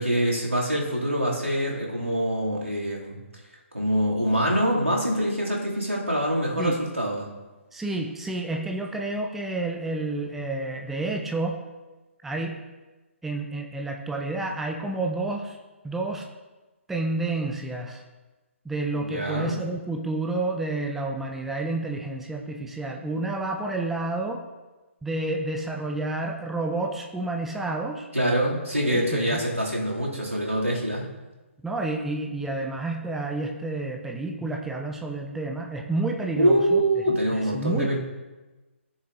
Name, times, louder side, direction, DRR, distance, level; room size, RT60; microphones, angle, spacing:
voice 1, 0.0-3.2 3.7-7.3 19.0-19.6 28.1-31.0 36.4-38.0, equal, 90° right, -4 dB, 2.5 m, -25 dB
voice 2, 7.7-11.6 12.2-12.6 13.2-15.6 15.8-16.3 16.9-18.0 18.6-24.4 25.0-28.1 28.9-29.4 31.6-36.8 37.3-37.9, right 2 dB, 5° right, 1 dB, 0.5 m, -30 dB
14.5 x 6.9 x 2.6 m, 1.2 s
figure-of-eight pair, 135°, 7 cm